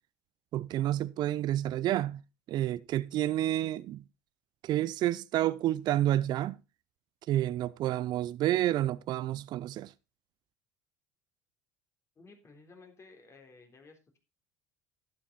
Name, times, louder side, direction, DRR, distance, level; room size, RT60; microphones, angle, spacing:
voice 1, 0.5-2.2 2.5-4.0 4.6-6.6 7.3-9.9, right 13 dB, 55° right, 0.5 m, -29 dB
voice 2, 12.2-14.2, left 3 dB, 30° left, 3.6 m, -55 dB
11.5 x 8.8 x 4.0 m
hypercardioid pair, 75°, 9 cm